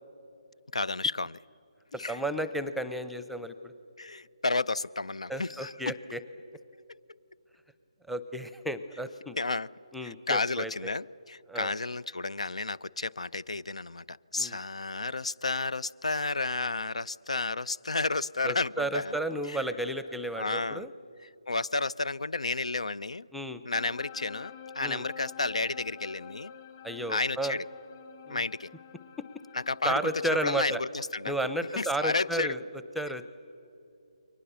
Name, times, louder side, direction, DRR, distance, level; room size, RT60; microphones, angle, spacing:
voice 1, 0.7-1.4 2.0-2.2 4.0-5.9 9.4-9.7 10.0-19.2 19.5-19.6 20.3-20.8 21.5-23.3 23.7-26.5 27.1-27.7 28.3-28.7 29.5-30.1 30.4-31.3 31.8-32.6, left 3 dB, 85° left, 0.5 m, -32 dB
voice 2, 2.1-3.7 5.3-6.2 8.1-9.4 9.9-10.9 11.5-11.7 14.4-14.6 18.4-20.9 23.3-23.6 24.8-25.0 26.8-27.5 28.3-28.4 29.2-29.3 29.8-30.8 31.3-33.3, right 1 dB, ahead, 0.7 m, -33 dB
sound 1, 23.7-30.6, left 7 dB, 40° left, 1.9 m, -48 dB
29.5 x 23.0 x 6.9 m
figure-of-eight pair, 155°, 3 cm